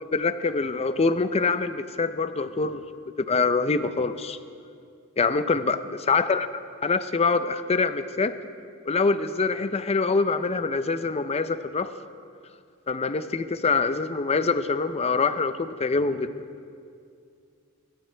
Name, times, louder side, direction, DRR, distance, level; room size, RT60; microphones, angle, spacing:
voice 1, 0.1-2.8 3.2-4.4 5.2-6.5 6.8-8.3 8.9-11.9 12.9-16.3, left 4 dB, 30° left, 11 dB, 0.5 m, -25 dB
25.5 x 12.5 x 3.4 m, 2.4 s
head